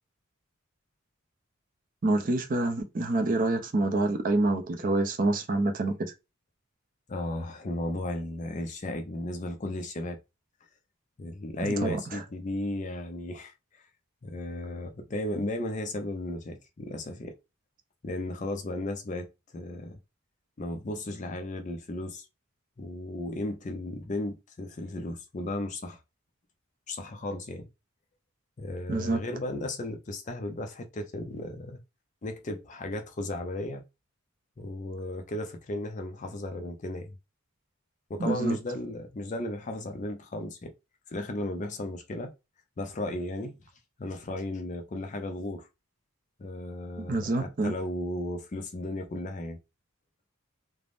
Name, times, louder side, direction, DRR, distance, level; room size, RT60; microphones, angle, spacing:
voice 1, 2.0-6.1 11.6-12.2 28.9-29.2 38.2-38.6 47.0-47.7, right 2 dB, 40° right, 0.5 m, -27 dB
voice 2, 7.1-10.2 11.2-13.8 14.2-17.3 18.0-19.3 19.5-20.0 20.6-22.3 22.8-26.0 26.9-27.7 28.6-31.8 32.2-33.8 34.6-37.2 38.1-40.7 41.1-42.3 42.8-43.5 44.0-45.7 46.4-49.6, left 1 dB, 35° left, 0.4 m, -35 dB
3.3 x 2.0 x 2.5 m
head